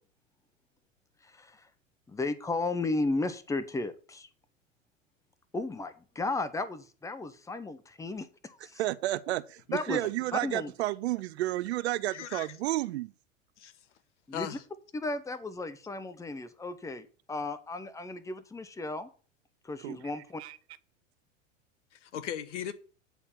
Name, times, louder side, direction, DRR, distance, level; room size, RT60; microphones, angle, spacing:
voice 1, 2.1-4.3 5.5-8.8 9.7-10.0 10.3-10.7 14.3-14.5 14.9-19.1 19.6-20.4, left 2 dB, 10° left, 0.9 m, -34 dB
voice 2, 8.8-13.1 19.8-20.0 20.4-20.6, right 16 dB, 55° right, 0.6 m, -31 dB
voice 3, 12.1-12.5 13.6-13.7 14.3-14.6 21.9-22.7, left 9 dB, 65° left, 1.2 m, -37 dB
9.2 x 4.3 x 7.1 m
figure-of-eight pair, 90°, 39 cm